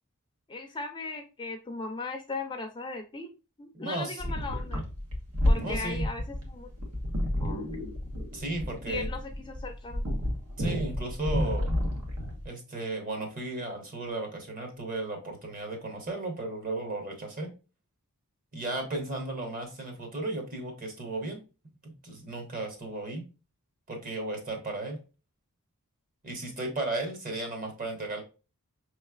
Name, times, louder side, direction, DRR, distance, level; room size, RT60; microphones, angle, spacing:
voice 1, 0.5-3.3 3.6-4.8 5.4-6.7 7.4-7.9 8.9-10.1, left 3 dB, 20° left, 6 dB, 0.4 m, -38 dB
voice 2, 3.7-4.4 5.6-6.1 8.3-9.1 10.6-11.7 12.4-17.5 18.5-21.4 21.8-23.2 23.9-25.0 26.2-28.2, right 2 dB, 40° right, 3 dB, 1.1 m, -35 dB
sound 1, 4.2-12.5, left 1 dB, 85° right, 1.3 m, -30 dB
5.3 x 3.1 x 2.3 m, 0.31 s
head